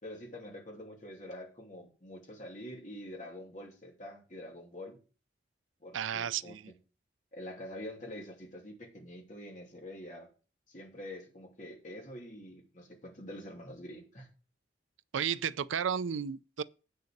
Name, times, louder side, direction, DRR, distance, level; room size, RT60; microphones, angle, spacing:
voice 1, 0.0-5.0 5.8-6.5 7.3-10.3 10.7-14.3, left 1 dB, 40° left, 2.8 m, -46 dB
voice 2, 5.9-6.7 15.1-16.6, right 8 dB, 90° right, 0.5 m, -33 dB
8.3 x 6.7 x 6.6 m
head